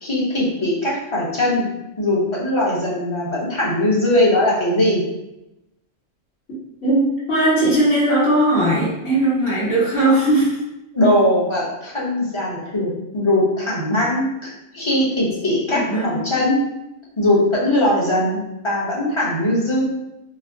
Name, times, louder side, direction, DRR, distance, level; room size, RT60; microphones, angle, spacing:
voice 1, 0.0-1.7 2.0-5.0 10.9-16.6 17.2-19.8, left 1 dB, 25° left, -6 dB, 0.9 m, -20 dB
voice 2, 6.8-10.6 15.7-16.2, right 1 dB, 80° left, -12 dB, 2.1 m, -18 dB
5.0 x 2.2 x 2.7 m, 0.92 s
omnidirectional pair, 1.3 m